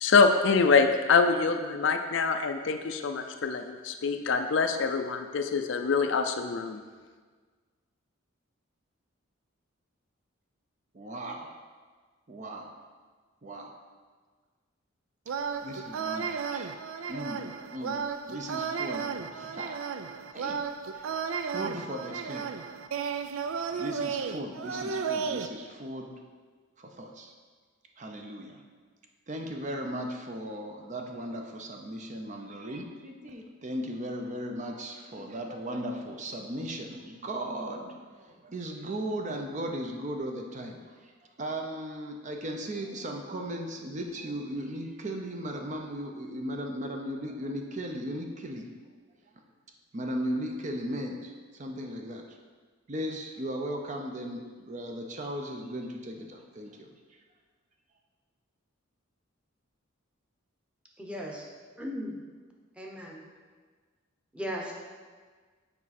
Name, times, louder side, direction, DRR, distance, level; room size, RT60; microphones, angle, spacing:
voice 1, 0.0-6.8, left 4 dB, 60° left, 6 dB, 0.4 m, -25 dB
voice 2, 10.9-11.5 12.3-12.7 13.4-13.7 15.6-16.7 17.1-17.4 17.7-19.8 20.3-20.6 20.9-21.1 21.4-22.5 23.8-26.1 26.8-27.3 28.0-28.6 29.3-41.1 41.4-48.7 49.9-52.2 52.9-56.9, right 1 dB, 35° right, 2 dB, 0.6 m, -37 dB
sound 1, 15.3-25.5, right 6 dB, 80° right, 0.4 m, -34 dB
voice 3, 61.0-61.4 61.7-62.1 62.8-63.2 64.3-64.7, equal, 5° right, -2 dB, 0.9 m, -36 dB
7.2 x 4.9 x 4.2 m, 1.5 s
head